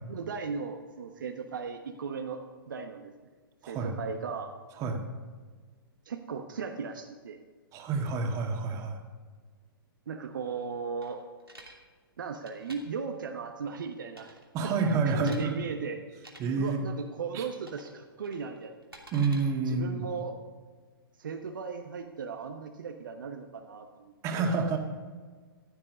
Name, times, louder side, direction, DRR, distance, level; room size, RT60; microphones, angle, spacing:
voice 1, 0.1-3.1 3.7-4.5 6.0-7.4 10.1-11.2 12.2-14.4 14.6-16.0 16.6-18.7 19.6-20.4 21.2-24.5, right 5 dB, 60° right, 5 dB, 1.1 m, -37 dB
voice 2, 3.6-4.0 4.8-5.0 7.7-9.0 14.5-15.6 16.4-16.8 17.3-17.4 19.1-20.1 24.2-24.8, right 4 dB, 25° right, 3 dB, 1.9 m, -28 dB
sound 1, 11.0-11.8 12.3-12.8 14.1-14.5 14.8-15.5 16.1-16.4 17.6-17.9 18.2-19.4, right 1 dB, 85° right, 2.8 m, -50 dB
15.0 x 11.0 x 5.3 m, 1.5 s
figure-of-eight pair, 115°, 12 cm